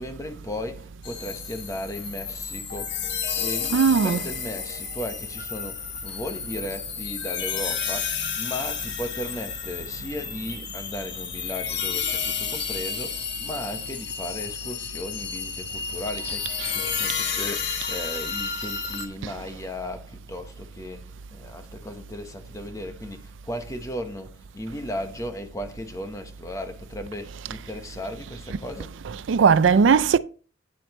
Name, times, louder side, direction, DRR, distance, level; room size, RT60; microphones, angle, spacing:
voice 1, 0.0-29.0, left 1 dB, 15° left, 1.1 m, -36 dB
sound 1, 1.0-19.1, left 6 dB, 60° left, 1.5 m, -31 dB
voice 2, 3.7-4.3 16.6-16.8 19.2-19.3 29.1-30.2, right 6 dB, 70° right, 0.4 m, -19 dB
9.5 x 7.5 x 3.1 m
head